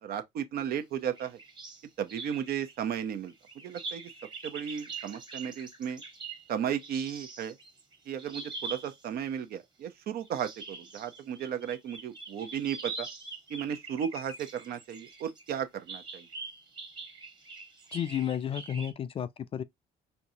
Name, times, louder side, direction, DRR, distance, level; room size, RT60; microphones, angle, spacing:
voice 1, 0.0-1.4 2.0-3.3 3.6-4.1 4.4-6.0 6.5-7.6 8.1-13.1 13.5-16.3, right 9 dB, 65° right, 0.7 m, -34 dB
sound 1, 1.2-1.8 2.1-9.1 10.2-15.5 15.9-18.9, right 3 dB, 25° right, 1.3 m, -44 dB
voice 2, 17.9-19.6, left 9 dB, 35° left, 0.3 m, -32 dB
4.6 x 2.7 x 2.7 m
cardioid pair, 110°, 17 cm